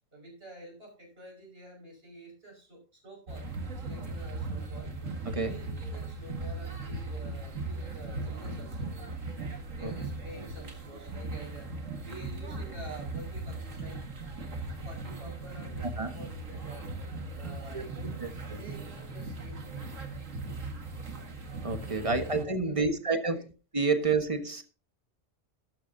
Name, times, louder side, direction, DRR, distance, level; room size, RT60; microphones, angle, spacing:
voice 1, 0.1-4.9 5.4-9.1 9.7-11.7 12.0-14.0 14.8-16.9 17.3-19.9 21.8-23.4, right 1 dB, 50° right, 5.9 m, -49 dB
sound 1, 3.3-22.4, right 2 dB, 80° right, 2.2 m, -38 dB
voice 2, 15.8-16.1 17.7-17.8 18.2-18.6 21.6-23.3 23.7-24.6, right 4 dB, 25° right, 1.3 m, -29 dB
13.5 x 12.0 x 2.7 m
omnidirectional pair, 1.3 m